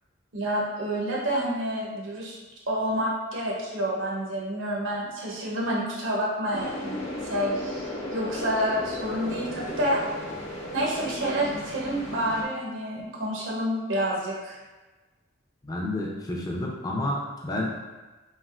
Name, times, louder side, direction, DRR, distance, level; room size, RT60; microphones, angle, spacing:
voice 1, 0.3-2.4 2.7-10.0 10.7-14.6, equal, 80° right, -4 dB, 0.8 m, -28 dB
sound 1, 6.5-12.4, left 1 dB, 90° left, 0.7 m, -35 dB
voice 2, 15.6-17.8, left 1 dB, 20° left, -2 dB, 0.4 m, -30 dB
3.2 x 2.5 x 2.4 m, 1.2 s
head